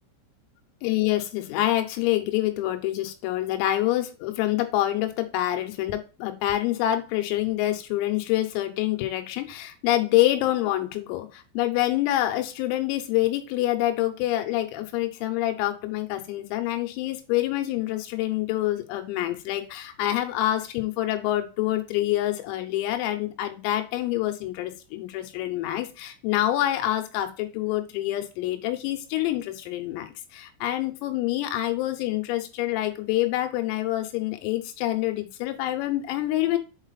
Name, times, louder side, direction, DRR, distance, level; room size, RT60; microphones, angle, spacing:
voice 1, 0.8-36.6, left 14 dB, 85° left, 7 dB, 3.6 m, -26 dB
7.6 x 4.1 x 4.0 m, 0.31 s
omnidirectional pair, 5.9 m